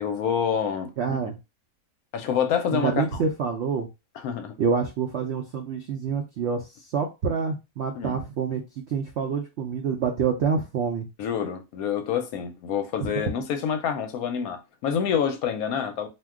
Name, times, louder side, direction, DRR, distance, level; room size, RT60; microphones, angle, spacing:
voice 1, 0.0-1.3 2.1-3.2 4.2-4.6 8.0-8.2 11.2-16.1, left 7 dB, 70° left, 0.9 m, -27 dB
voice 2, 1.0-1.4 2.7-3.9 4.6-6.7 6.9-11.1 13.0-13.1, right 6 dB, 90° right, 0.5 m, -27 dB
2.6 x 2.2 x 3.5 m
omnidirectional pair, 1.7 m